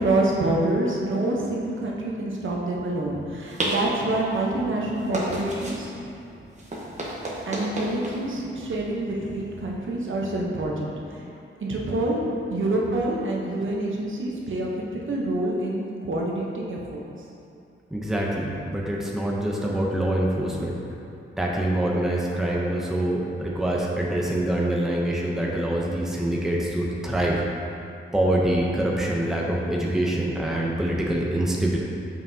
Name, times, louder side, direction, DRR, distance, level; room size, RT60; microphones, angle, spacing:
voice 1, 0.0-5.9 7.5-10.9 11.6-12.2 12.5-17.0, right 2 dB, 70° right, -3 dB, 0.9 m, -26 dB
sound 1, 2.8-10.4, right 1 dB, 35° right, 1.0 m, -35 dB
voice 2, 17.9-20.8 21.4-27.4 28.1-31.8, right 1 dB, ahead, -3 dB, 0.6 m, -25 dB
7.0 x 5.7 x 2.7 m, 2.6 s
wide cardioid pair, 125°, 21 cm